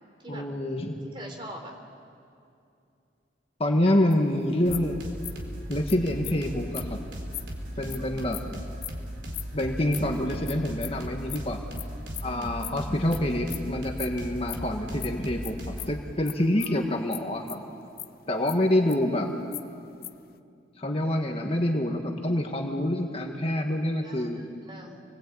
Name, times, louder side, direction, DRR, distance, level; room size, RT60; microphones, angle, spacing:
voice 1, 0.3-1.0 3.6-5.0 5.7-7.0 7.8-8.6 9.5-11.6 12.2-17.6 18.3-19.4 20.8-24.4, left 1 dB, 35° left, 2 dB, 1.8 m, -27 dB
voice 2, 1.1-1.7 7.7-8.0 12.2-12.6 16.6-16.7 18.4-18.7 20.9-21.1 24.0-25.0, right 1 dB, 25° right, 2 dB, 3.5 m, -44 dB
sound 1, 4.1-4.2 4.7-4.9 5.2-5.5 5.9-6.0 6.2-6.3 6.7-6.8 7.3-7.4 7.9-8.0 8.3-8.4 8.8-8.9 9.3-9.4 9.9-10.0 10.5-10.6 10.8-10.9 11.3-11.4 11.8-11.9 12.1-12.3 12.6-13.2 13.5-13.6 14.0-14.1 14.4-14.6 15.0-15.1 15.4-15.5 15.8-15.9 16.3-16.4 16.6-16.8 17.1-17.2 17.5-18.1 18.5-19.2 19.5-20.3, left 15 dB, 55° left, 0.7 m, -37 dB
sound 2, 4.7-15.9, equal, 80° right, 4.0 m, -37 dB
27.5 x 21.0 x 8.7 m, 2.5 s
head